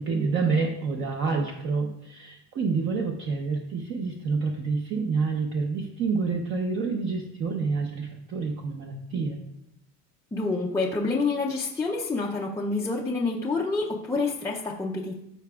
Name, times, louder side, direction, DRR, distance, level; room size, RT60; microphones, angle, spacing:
voice 1, 0.0-9.4, right 4 dB, 35° right, 1 dB, 0.8 m, -28 dB
voice 2, 10.3-15.2, left 3 dB, 10° left, -3 dB, 0.5 m, -28 dB
13.5 x 5.7 x 2.4 m, 0.80 s
cardioid pair, 155°, 34 cm